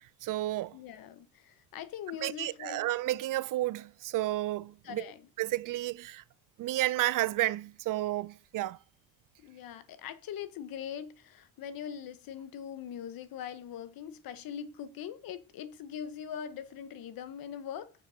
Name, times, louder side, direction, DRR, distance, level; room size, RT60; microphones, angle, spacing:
voice 1, 0.2-0.8 2.2-5.1 5.4-6.2 6.6-8.8, right 16 dB, 60° right, 0.5 m, -31 dB
voice 2, 0.7-2.9 4.8-5.3 9.4-17.9, left 9 dB, 70° left, 1.1 m, -42 dB
6.8 x 6.0 x 5.5 m
cardioid pair, 140°, 36 cm